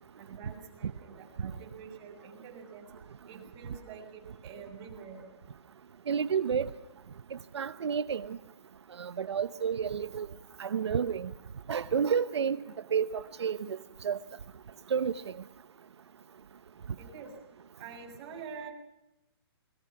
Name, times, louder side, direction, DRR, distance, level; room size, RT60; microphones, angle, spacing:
voice 1, 0.2-2.9 3.3-5.2 17.0-17.3 17.8-18.7, right 6 dB, 30° right, 7.2 m, -46 dB
voice 2, 6.1-6.7 7.5-8.4 9.0-10.3 10.6-11.3 11.7-12.6 12.9-13.8 14.0-14.2 14.9-15.3, right 7 dB, 90° right, 1.0 m, -30 dB
28.0 x 21.5 x 5.9 m
hypercardioid pair, 155°, 14 cm